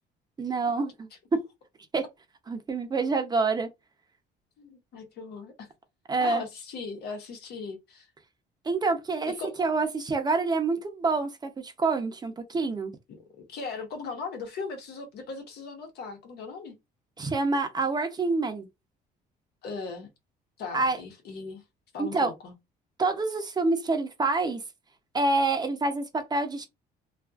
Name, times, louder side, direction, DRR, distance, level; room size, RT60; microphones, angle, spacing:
voice 1, 0.4-1.1 1.9-2.0 2.5-3.7 6.1-6.4 8.7-12.9 17.2-18.7 20.7-21.0 22.0-22.3 23.0-24.6 25.1-26.7, right 3 dB, 25° right, 0.6 m, -27 dB
voice 2, 4.6-5.7 6.2-8.1 9.2-9.6 13.1-16.8 19.6-20.1 20.6-21.6 21.9-22.5, left 4 dB, 70° left, 1.1 m, -38 dB
2.7 x 2.5 x 2.3 m
cardioid pair, 110°, 17 cm